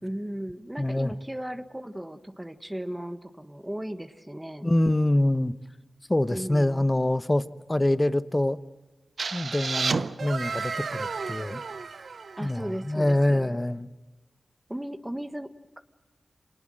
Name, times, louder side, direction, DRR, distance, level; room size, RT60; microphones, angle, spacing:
voice 1, 0.0-4.7 6.3-6.9 12.4-13.6 14.7-15.8, right 1 dB, 10° right, 10 dB, 1.4 m, -36 dB
voice 2, 0.8-1.1 4.6-5.5 6.1-7.4 7.7-8.6 9.3-11.6 12.4-13.9, left 1 dB, 20° left, 14 dB, 1.1 m, -25 dB
sound 1, 9.2-12.9, right 4 dB, 75° right, 0.8 m, -32 dB
26.5 x 19.5 x 7.7 m, 1.2 s
cardioid pair, 55°, 0 cm